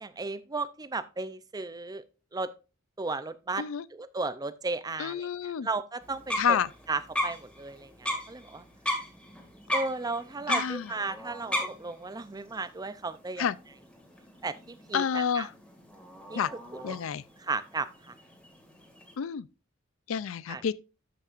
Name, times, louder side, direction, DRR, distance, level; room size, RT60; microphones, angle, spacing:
voice 1, 0.0-2.0 2.3-2.5 3.0-3.6 3.9-6.6 6.9-8.6 9.7-13.5 14.4-15.5 16.3-16.4 16.7-17.0 17.4-18.1 20.5-20.6, right 3 dB, 20° right, 0.5 m, -35 dB
voice 2, 5.0-5.7 6.4-6.7 10.5-10.9 13.4-13.6 14.9-15.5 16.4-16.5 16.8-17.2 19.2-19.5 20.1-20.7, left 7 dB, 70° left, 0.4 m, -29 dB
sound 1, 6.0-19.2, equal, 5° left, 1.9 m, -37 dB
13.0 x 5.5 x 2.5 m
head